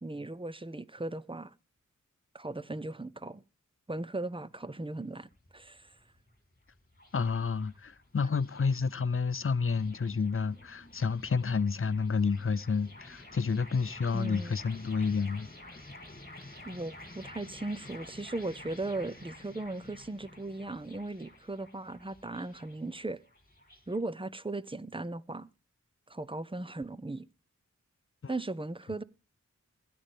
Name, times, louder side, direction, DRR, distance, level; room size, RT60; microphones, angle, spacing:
voice 1, 0.0-1.5 2.3-3.4 3.9-5.9 14.1-14.6 16.6-23.2 23.9-25.5 26.1-27.3 28.3-29.0, right 2 dB, 15° right, 0.6 m, -37 dB
sound 1, 5.0-24.0, left 1 dB, 30° left, 2.4 m, -51 dB
voice 2, 7.1-15.5 28.2-28.3, left 5 dB, 45° left, 0.5 m, -30 dB
16.0 x 10.0 x 3.4 m
wide cardioid pair, 55°, 30 cm